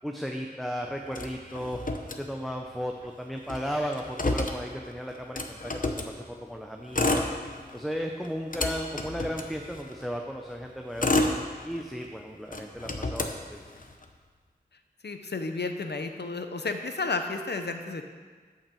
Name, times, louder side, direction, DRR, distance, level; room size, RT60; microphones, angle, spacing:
voice 1, 0.0-1.8 2.1-7.2 7.7-11.1 11.6-13.6, equal, ahead, 2 dB, 0.7 m, -35 dB
Motor vehicle (road), 1.1-2.7 3.0-3.1 3.4-6.1 6.8-7.8 8.2-10.0 10.6-12.1 12.5-14.0, left 2 dB, 55° left, 0.8 m, -30 dB
voice 2, 15.0-18.1, left 3 dB, 90° left, 6 dB, 0.7 m, -32 dB
8.8 x 5.5 x 6.9 m, 1.5 s
wide cardioid pair, 50°, 17 cm